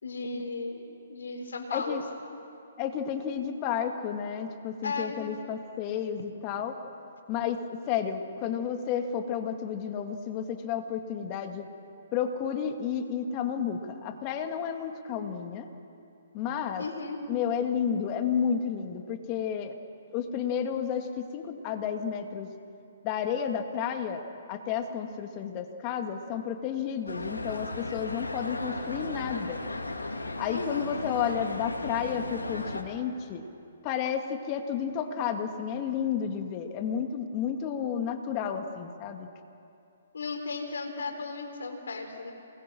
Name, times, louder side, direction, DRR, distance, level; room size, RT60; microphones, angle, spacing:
voice 1, 0.0-2.0 4.8-5.2 16.8-17.2 30.5-30.9 40.1-42.3, left 4 dB, 70° left, 4 dB, 4.1 m, -35 dB
voice 2, 1.7-2.0 2.8-6.8 7.3-11.6 12.1-15.7 16.3-16.8 17.3-19.8 20.1-22.5 23.0-24.2 24.5-29.6 30.4-33.5 33.8-39.3, left 8 dB, 30° left, 6 dB, 2.1 m, -31 dB
sound 1, 27.1-32.8, left 2 dB, 90° left, 2.4 m, -35 dB
28.5 x 20.5 x 6.2 m, 2.6 s
figure-of-eight pair, 130°, 0 cm